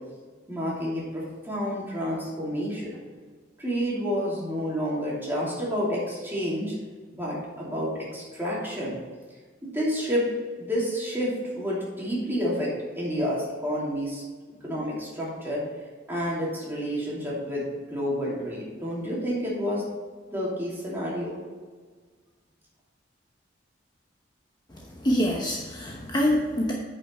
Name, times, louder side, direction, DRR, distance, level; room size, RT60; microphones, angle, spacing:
voice 1, 0.5-3.0 3.6-6.8 7.1-9.0 9.6-10.3 10.6-14.2 14.6-15.6 16.1-19.8 20.3-21.4, equal, 10° right, -6 dB, 2.7 m, -29 dB
voice 2, 24.7-26.7, equal, 25° left, -2 dB, 0.9 m, -26 dB
9.3 x 5.4 x 4.4 m, 1.5 s
head